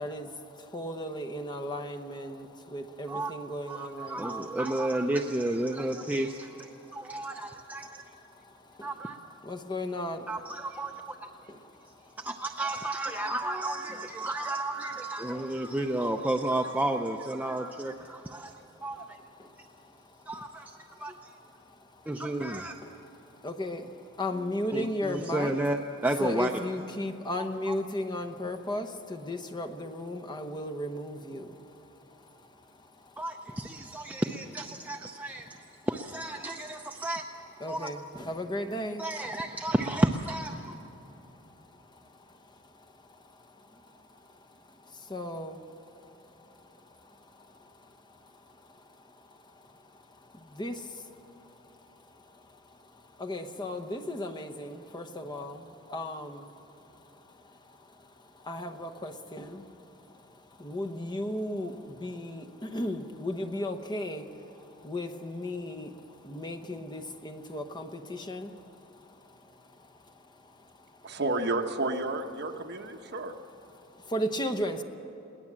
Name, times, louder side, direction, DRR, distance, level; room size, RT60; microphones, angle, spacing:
voice 1, 0.0-4.5 8.8-8.9 9.4-10.3 11.5-11.7 19.4-19.5 23.4-23.9 24.2-25.5 26.2-31.5 37.6-38.0 38.2-39.0 45.1-45.6 50.3-51.0 53.2-56.5 58.4-59.8 60.6-64.3 64.8-65.9 66.2-68.5 74.1-74.8, left 1 dB, 20° left, 4 dB, 1.0 m, -35 dB
voice 2, 3.7-8.1 8.8-9.2 10.3-11.3 12.2-18.6 18.8-19.2 20.3-21.3 22.1-22.7 24.7-26.6 27.4-27.8 33.2-35.6 35.9-37.2 37.6-37.9 39.0-40.7, right 1 dB, 10° right, 3 dB, 0.6 m, -32 dB
voice 3, 71.0-73.3, right 2 dB, 55° right, 4 dB, 1.2 m, -31 dB
22.0 x 18.0 x 7.5 m, 3.0 s
head